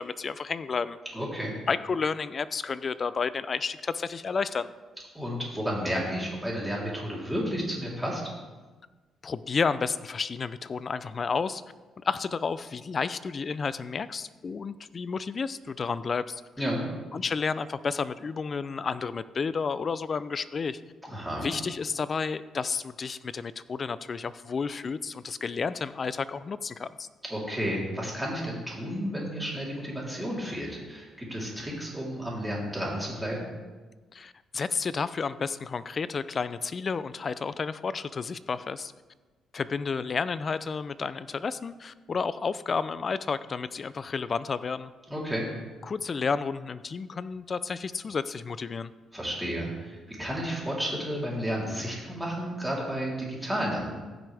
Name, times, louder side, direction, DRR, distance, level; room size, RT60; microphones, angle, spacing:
voice 1, 0.0-1.0 1.7-4.7 9.2-11.6 12.0-16.4 17.1-20.8 21.4-27.1 34.1-38.9 39.5-44.9 45.8-48.9, left 5 dB, 40° left, 15 dB, 0.4 m, -31 dB
voice 2, 1.1-1.5 5.1-8.2 16.6-16.8 21.1-21.5 27.3-33.5 45.1-45.4 49.1-53.9, equal, 5° right, -5 dB, 3.4 m, -32 dB
15.0 x 6.2 x 3.4 m, 1.3 s
cardioid pair, 90°, 0 cm